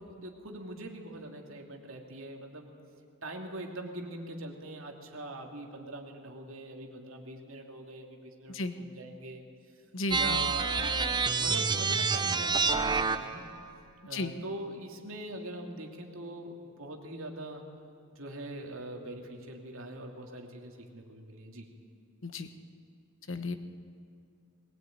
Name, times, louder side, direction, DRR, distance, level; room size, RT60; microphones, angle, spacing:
voice 1, 0.0-2.7 3.2-9.4 10.1-13.4 14.0-17.6 18.1-21.7, right 1 dB, 65° right, 2 dB, 2.8 m, -42 dB
voice 2, 9.9-10.4 14.1-14.3 22.2-22.5 23.3-23.6, left 2 dB, 60° left, 9 dB, 1.3 m, -34 dB
sound 1, 10.1-13.4, right 4 dB, 20° right, 0.8 m, -28 dB
21.0 x 18.5 x 9.3 m, 2.4 s
head